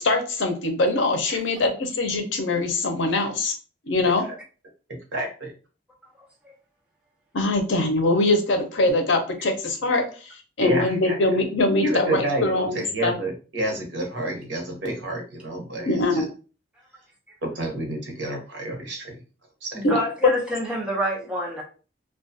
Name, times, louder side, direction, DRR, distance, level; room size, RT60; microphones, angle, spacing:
voice 1, 0.0-3.5 3.9-4.2 7.3-10.0 10.6-13.1 15.8-16.3 19.8-20.0, left 2 dB, 80° left, 0.6 m, -23 dB
voice 2, 4.9-5.5 10.6-11.2 11.8-16.3 17.4-19.2 19.6-19.8, right 1 dB, 75° right, 0.8 m, -29 dB
voice 3, 19.7-21.6, equal, 5° right, 0.6 m, -27 dB
2.3 x 2.2 x 2.6 m
head